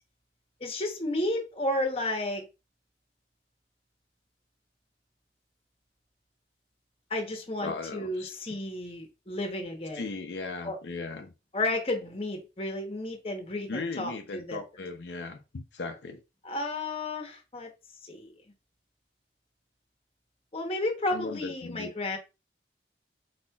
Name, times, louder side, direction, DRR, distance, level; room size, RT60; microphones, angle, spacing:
voice 1, 0.6-2.5 7.1-10.1 10.6-10.8 11.5-14.6 16.4-17.7 18.1-18.3 20.5-22.2, left 1 dB, 30° left, 0.9 m, -32 dB
voice 2, 7.4-8.3 9.9-11.3 13.7-16.2 21.1-21.9, left 3 dB, 80° left, 0.6 m, -37 dB
4.3 x 4.2 x 2.3 m
head